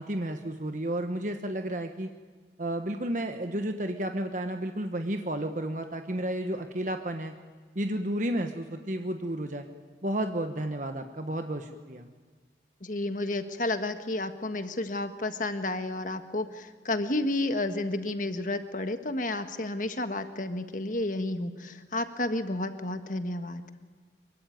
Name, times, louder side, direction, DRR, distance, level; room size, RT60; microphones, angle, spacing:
voice 1, 0.0-2.1 2.6-7.4 7.7-9.6 10.0-12.1, right 1 dB, 45° right, 6 dB, 1.2 m, -32 dB
voice 2, 12.8-23.6, left 2 dB, 45° left, 8 dB, 1.6 m, -31 dB
25.0 x 23.0 x 9.3 m, 1.5 s
head